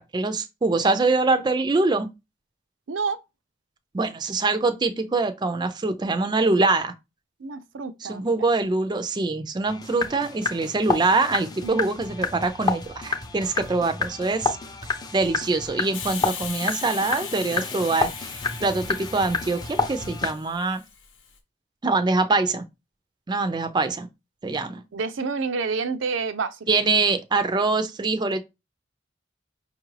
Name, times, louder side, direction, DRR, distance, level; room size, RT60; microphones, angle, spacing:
voice 1, 0.0-2.1 3.9-6.9 8.0-14.6 15.1-20.8 21.8-22.7 23.3-24.1 24.4-24.8 26.7-28.4, right 3 dB, 25° right, 0.4 m, -24 dB
voice 2, 2.9-3.2 7.4-8.3 11.6-11.9 24.9-26.6, right 4 dB, 85° right, 0.5 m, -28 dB
sound 1, 9.7-20.3, left 4 dB, 20° left, 0.6 m, -30 dB
Hiss, 15.9-21.3, left 7 dB, 80° left, 0.9 m, -38 dB
5.2 x 2.4 x 3.2 m
head